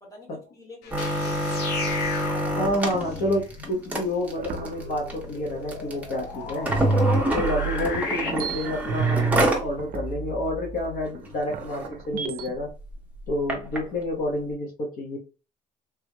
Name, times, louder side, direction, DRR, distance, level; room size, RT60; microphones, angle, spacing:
voice 1, 0.0-2.7 7.0-7.5, left 3 dB, 20° left, -2 dB, 1.8 m, -46 dB
sound 1, 0.8-8.3, left 5 dB, 80° left, 0.8 m, -36 dB
sound 2, 0.9-9.7 10.1-10.2 10.5-10.8 11.3-11.4 11.6-11.9 12.6-13.8 14.5-14.6, right 1 dB, 10° right, 1.0 m, -28 dB
voice 2, 2.5-6.7 7.3-12.7 13.3-15.2, left 1 dB, 55° left, -1 dB, 1.0 m, -29 dB
sound 3, 4.4-6.3 6.7-12.5, right 4 dB, 60° right, 0.6 m, -29 dB
3.4 x 3.1 x 2.2 m, 0.32 s
cardioid pair, 110°, 17 cm